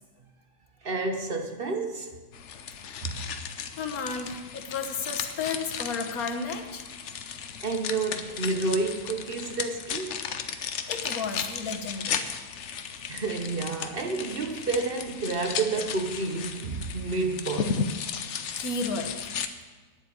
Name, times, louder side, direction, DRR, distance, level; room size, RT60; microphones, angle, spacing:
voice 1, 0.8-2.1 3.0-3.1 7.6-10.2 13.1-17.8, right 3 dB, 45° right, 5 dB, 1.1 m, -30 dB
sound 1, 2.3-19.5, left 7 dB, 60° left, 1.0 m, -35 dB
voice 2, 3.8-6.8 10.9-12.2 18.5-19.3, left 4 dB, 90° left, 5 dB, 1.7 m, -33 dB
9.7 x 7.9 x 8.6 m, 1.3 s
omnidirectional pair, 1.5 m